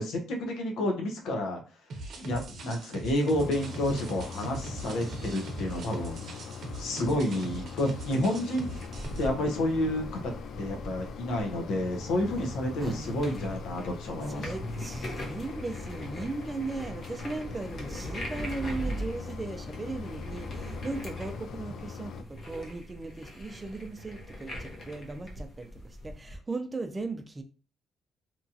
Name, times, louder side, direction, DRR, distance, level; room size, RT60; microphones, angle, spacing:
voice 1, 0.0-1.6 2.2-6.2 6.8-8.7 9.2-10.3 10.6-14.5, left 1 dB, 85° left, 2 dB, 0.7 m, -30 dB
sound 1, 1.9-9.3, right 2 dB, 70° right, 0.7 m, -41 dB
Mechanisms, 3.3-22.2, left 5 dB, 70° left, 0.3 m, -42 dB
sound 2, 8.8-26.4, equal, 45° left, 0.8 m, -41 dB
voice 2, 12.3-13.4 14.3-27.4, right 3 dB, 25° right, 6 dB, 0.4 m, -37 dB
2.9 x 2.3 x 2.7 m, 0.35 s
cardioid pair, 90°, 0 cm